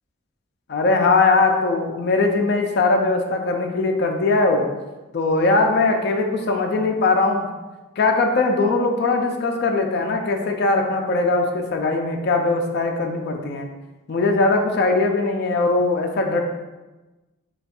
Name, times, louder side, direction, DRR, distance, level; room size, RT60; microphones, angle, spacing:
voice 1, 0.7-4.7 5.1-7.5 8.0-13.7 14.1-16.4, left 3 dB, 50° left, 3 dB, 0.4 m, -20 dB
3.3 x 2.3 x 4.2 m, 1.1 s
head